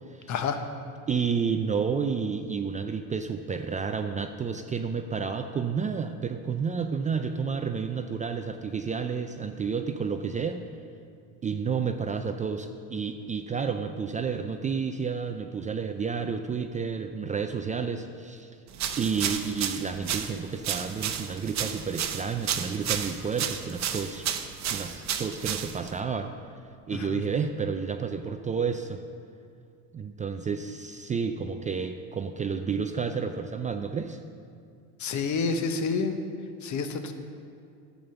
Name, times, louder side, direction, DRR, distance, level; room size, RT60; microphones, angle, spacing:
voice 1, 0.3-0.6 26.9-27.2 35.0-36.2 36.6-37.1, left 4 dB, 40° left, 7 dB, 1.1 m, -28 dB
voice 2, 1.1-10.7 11.4-18.5 19.0-24.3 24.7-26.3 26.9-29.0 29.9-34.2, right 6 dB, 20° right, 6 dB, 0.3 m, -30 dB
sound 1, 18.7-26.0, right 9 dB, 40° right, 0.9 m, -32 dB
8.9 x 7.1 x 6.8 m, 2.3 s
supercardioid pair, 100°, 43 cm